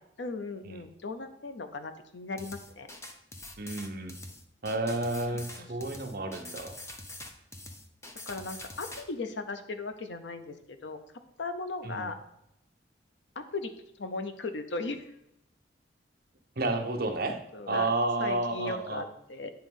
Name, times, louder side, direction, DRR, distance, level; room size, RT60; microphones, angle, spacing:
voice 1, 0.2-2.9 5.6-6.0 8.3-11.0 11.4-12.1 13.5-13.7 14.0-15.1 17.5-17.9 18.2-19.5, left 3 dB, 80° left, 8 dB, 0.7 m, -37 dB
sound 1, 2.4-9.0, left 2 dB, 15° left, 0.6 m, -44 dB
voice 2, 3.6-4.2 4.6-6.8 11.8-12.1 16.6-17.4 17.7-19.0, right 2 dB, 55° right, 4 dB, 0.9 m, -31 dB
8.9 x 3.1 x 5.3 m, 0.80 s
head